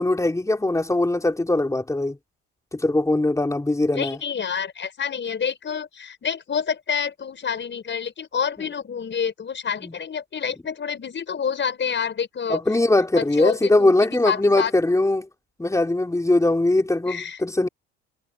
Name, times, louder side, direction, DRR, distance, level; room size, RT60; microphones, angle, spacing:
voice 1, 0.0-2.2 2.7-4.2 9.8-9.9 12.5-15.3 15.6-17.7, left 2 dB, 10° left, 4.1 m, -21 dB
voice 2, 3.9-12.6 13.2-14.7 17.1-17.4, left 7 dB, 35° left, 5.6 m, -28 dB
supercardioid pair, 85°, 31 cm